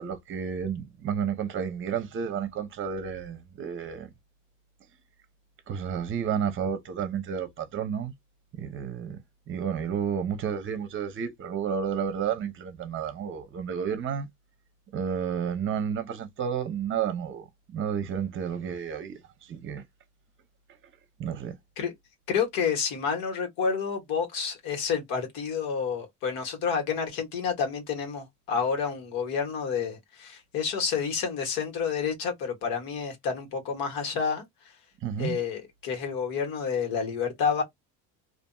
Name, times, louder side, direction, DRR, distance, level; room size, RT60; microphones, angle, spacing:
voice 1, 0.0-4.1 5.7-8.1 8.6-9.2 9.5-14.3 14.9-17.5 17.7-19.8 21.2-21.6 35.0-35.4, right 7 dB, 35° right, 0.7 m, -31 dB
voice 2, 22.3-34.4 35.2-37.6, left 6 dB, 75° left, 1.4 m, -29 dB
2.6 x 2.6 x 2.2 m
cardioid pair, 120°, 35 cm